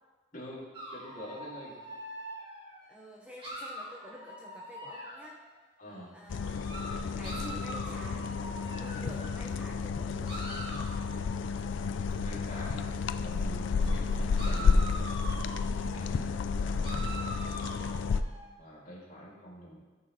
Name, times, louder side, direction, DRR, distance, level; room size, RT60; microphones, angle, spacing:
voice 1, 0.3-0.6 0.9-1.8 5.8-6.1 12.2-12.9 13.2-14.8 15.9-17.2 18.6-19.8, equal, 40° left, -6 dB, 2.4 m, -45 dB
sound 1, 0.7-2.8 3.4-5.5 6.5-9.4 10.3-12.2 13.8-14.0 14.4-16.1 16.8-18.5, right 1 dB, 25° right, 1.8 m, -43 dB
voice 2, 2.9-5.4 6.1-6.6 7.2-8.3 8.8-10.4 13.9-14.3 15.8-16.9, equal, 5° right, -2 dB, 0.7 m, -49 dB
sound 2, 6.3-18.2, left 4 dB, 70° left, 0.3 m, -31 dB
13.5 x 6.2 x 3.1 m, 1.3 s
head